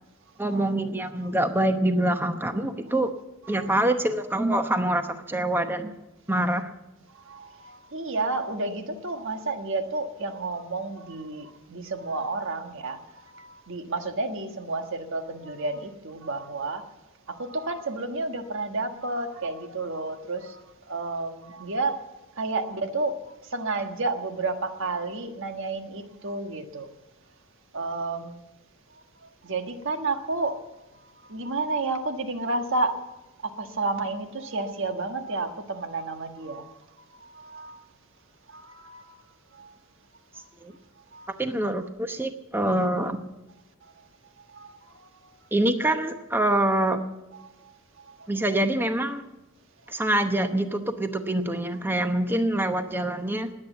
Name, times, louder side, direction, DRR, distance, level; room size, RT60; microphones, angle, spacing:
voice 1, 0.4-3.1 3.5-5.9 6.3-6.7 40.6-40.7 41.4-43.2 45.5-47.0 48.3-49.2 49.9-53.5, right 1 dB, 10° right, 7 dB, 0.8 m, -25 dB
voice 2, 7.1-16.8 17.3-20.6 20.9-22.0 22.4-26.9 27.7-28.4 29.4-30.6 31.2-33.0 33.4-36.7 37.2-37.8 38.5-39.2 39.5-39.7 41.1-41.3 44.5-45.1 47.4-47.7 48.1-48.3, right 3 dB, 60° right, 6 dB, 1.5 m, -31 dB
20.0 x 8.8 x 8.1 m, 1.0 s
head